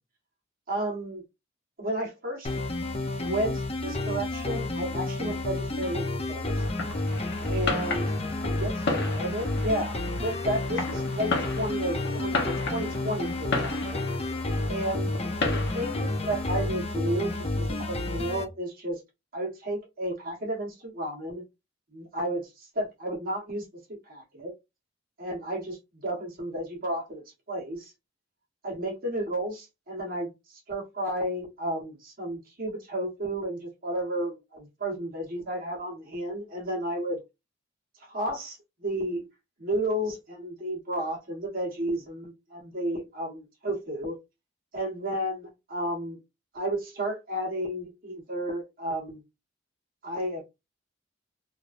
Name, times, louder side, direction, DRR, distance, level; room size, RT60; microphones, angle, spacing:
voice 1, 0.7-1.2 1.8-2.5 3.2-6.6 7.5-8.1 8.4-14.0 14.7-15.1 15.5-19.0 19.3-21.4 21.9-24.5 25.2-27.9 28.6-37.2 38.1-39.3 39.6-44.2 44.7-46.2 46.5-49.2 50.0-50.4, right 1 dB, 50° right, 1.3 m, -32 dB
sound 1, 2.4-18.4, left 2 dB, 35° left, 0.6 m, -30 dB
Fireworks, 6.6-16.6, left 3 dB, 60° left, 0.9 m, -34 dB
3.3 x 2.5 x 2.5 m
head